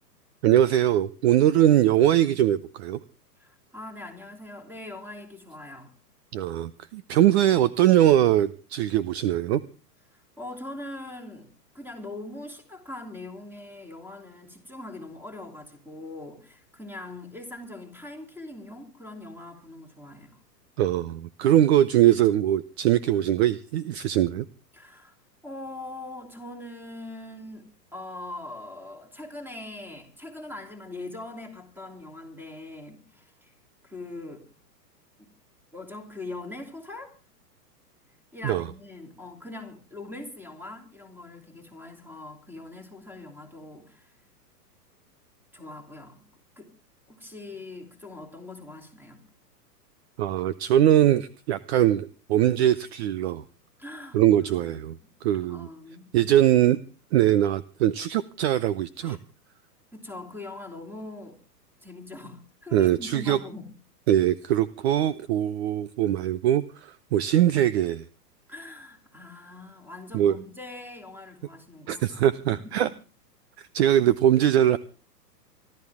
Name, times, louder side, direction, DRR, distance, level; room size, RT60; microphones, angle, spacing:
voice 1, 0.4-3.0 6.3-9.6 20.8-24.4 38.4-38.7 50.2-53.4 54.1-55.0 55.2-55.7 56.1-56.8 57.1-59.2 62.7-63.4 64.1-68.0 70.1-70.3 71.9-72.9 73.6-74.8, right 12 dB, 40° right, 0.7 m, -22 dB
voice 2, 3.4-5.9 10.1-11.5 11.7-20.4 24.7-25.1 25.4-33.5 33.8-34.5 35.2-35.3 35.7-37.2 38.3-44.1 45.5-46.2 46.6-46.7 47.1-49.3 53.8-55.1 55.4-56.1 59.0-59.2 59.9-61.4 61.8-63.7 68.5-72.9, left 2 dB, 5° right, 3.1 m, -42 dB
24.0 x 13.0 x 3.6 m
hypercardioid pair, 135°, 50 cm